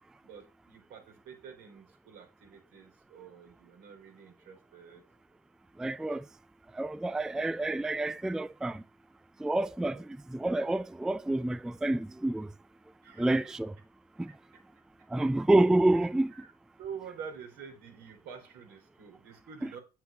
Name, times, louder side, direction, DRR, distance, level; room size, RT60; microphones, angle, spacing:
voice 1, 0.2-5.2 9.9-10.0 13.0-13.5 15.9-16.5 16.8-19.8, right 7 dB, 75° right, 3.8 m, -47 dB
voice 2, 5.8-6.2 6.8-8.8 9.4-10.0 10.3-12.5 13.2-13.7 14.2-14.3 15.1-16.3 19.6-19.7, right 2 dB, 5° right, 0.3 m, -28 dB
8.3 x 7.2 x 3.3 m
cardioid pair, 110°, 17 cm